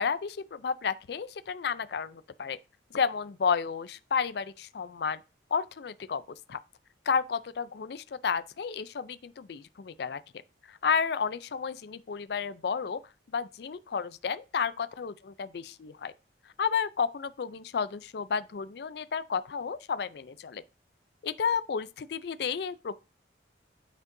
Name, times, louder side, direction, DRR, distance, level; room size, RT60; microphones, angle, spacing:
voice 1, 0.0-2.6 2.9-5.2 5.5-6.2 6.5-6.6 7.1-10.2 10.7-13.0 13.3-16.1 16.6-20.6 21.2-22.9, left 6 dB, 60° left, 0.4 m, -31 dB
9.4 x 5.4 x 2.6 m
head